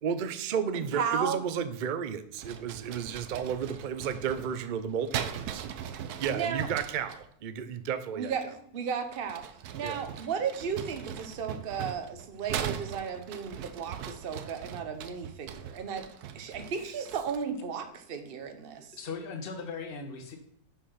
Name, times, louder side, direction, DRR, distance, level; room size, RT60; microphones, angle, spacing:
voice 1, 0.0-5.7 6.2-8.3 9.8-10.0, right 7 dB, 65° right, 11 dB, 0.5 m, -33 dB
voice 2, 0.9-1.4 6.3-6.7 8.1-9.4 9.7-16.0 16.3-18.9, right 6 dB, 45° right, 8 dB, 1.0 m, -34 dB
sound 1, 2.4-7.2 9.0-17.6, right 9 dB, 80° right, 1.2 m, -40 dB
voice 3, 18.9-20.4, left 4 dB, 40° left, 4 dB, 1.2 m, -38 dB
6.4 x 5.8 x 5.6 m, 0.65 s
omnidirectional pair, 1.6 m